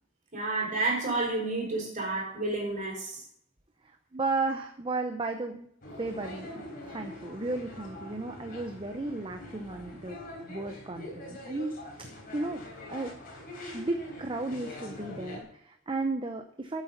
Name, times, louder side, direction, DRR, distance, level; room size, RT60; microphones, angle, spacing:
voice 1, 0.3-3.2, right 2 dB, 40° right, -1 dB, 5.1 m, -30 dB
voice 2, 3.8-5.7 6.0-6.5 6.9-10.2 10.5-12.1 12.3-12.6 12.9-13.1 13.7-16.8, right 3 dB, 25° right, 5 dB, 0.7 m, -34 dB
sound 1, 5.8-15.4, left 1 dB, 50° left, 3.6 m, -44 dB
12.0 x 8.1 x 4.0 m, 0.72 s
head